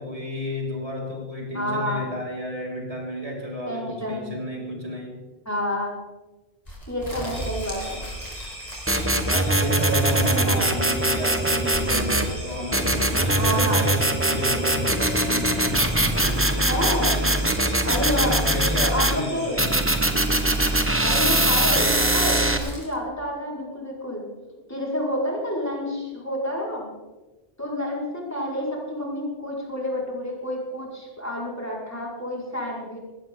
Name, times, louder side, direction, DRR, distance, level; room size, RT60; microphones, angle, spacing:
voice 1, 0.0-5.2 7.2-7.4 9.3-16.5 18.2-19.7, left 1 dB, 35° right, -3 dB, 5.4 m, -32 dB
voice 2, 1.5-2.0 3.7-4.2 5.5-5.9 6.9-8.3 10.1-10.6 13.4-13.8 16.7-17.2 17.8-18.4 18.8-19.6 21.0-24.2 24.7-26.9 27.6-33.0, equal, 15° left, -4 dB, 5.4 m, -29 dB
sound 1, 6.7-10.3 11.7-12.9 13.3-14.4 15.5-16.8 17.5-19.3 20.2-22.9, equal, 40° left, 4.7 m, -39 dB
sound 2, 7.3-21.6, equal, 60° right, 7.4 m, -40 dB
sound 3, 8.9-12.3 12.7-19.2 19.6-22.6, right 1 dB, 15° right, 1.3 m, -22 dB
19.5 x 17.5 x 4.0 m, 1.2 s
omnidirectional pair, 1.0 m